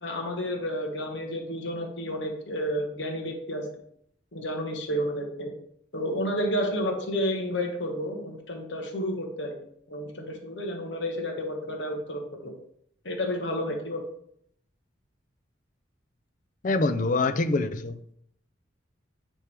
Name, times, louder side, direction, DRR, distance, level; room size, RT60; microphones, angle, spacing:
voice 1, 0.0-3.7 4.3-5.5 5.9-9.5 9.9-12.5 13.0-14.0, equal, 70° left, 1.2 m, -31 dB
voice 2, 16.6-18.1, left 3 dB, 40° left, 0.4 m, -25 dB
9.8 x 3.5 x 3.4 m
head